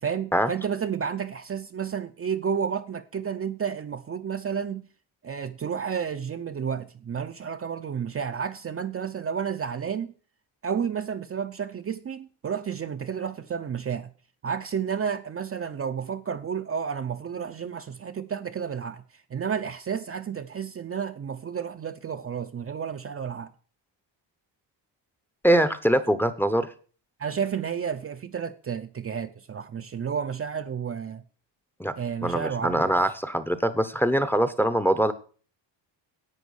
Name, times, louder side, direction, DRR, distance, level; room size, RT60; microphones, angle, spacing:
voice 1, 0.0-4.9 5.2-10.1 10.6-14.1 14.4-23.5 27.2-31.2 32.0-32.9, right 7 dB, 30° right, 0.6 m, -31 dB
voice 2, 25.4-26.7 31.8-31.9 32.2-35.1, right 1 dB, 5° left, 0.8 m, -23 dB
10.5 x 8.4 x 6.4 m
cardioid pair, 125°, 44 cm